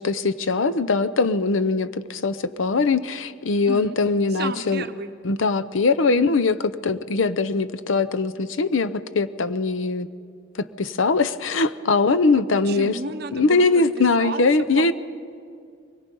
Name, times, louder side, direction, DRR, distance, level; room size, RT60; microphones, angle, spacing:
voice 1, 0.0-4.8 5.2-6.6 6.8-10.1 10.5-13.0 13.3-14.9, left 3 dB, 70° left, 12 dB, 0.7 m, -21 dB
voice 2, 3.7-4.0 4.3-5.1 6.1-6.4 12.4-14.9, right 3 dB, 50° right, 10 dB, 0.8 m, -33 dB
23.5 x 21.0 x 5.4 m, 2.3 s
head